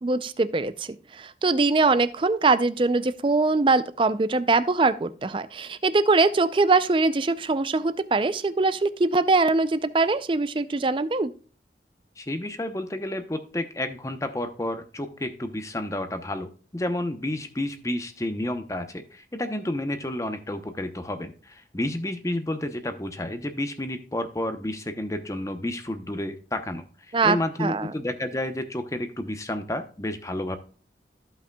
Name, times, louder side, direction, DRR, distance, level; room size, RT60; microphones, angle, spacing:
voice 1, 0.0-11.3 27.1-27.9, right 3 dB, 30° right, 13 dB, 0.4 m, -22 dB
voice 2, 12.2-30.6, left 1 dB, 15° left, 9 dB, 0.8 m, -31 dB
14.5 x 5.6 x 2.3 m, 0.40 s
head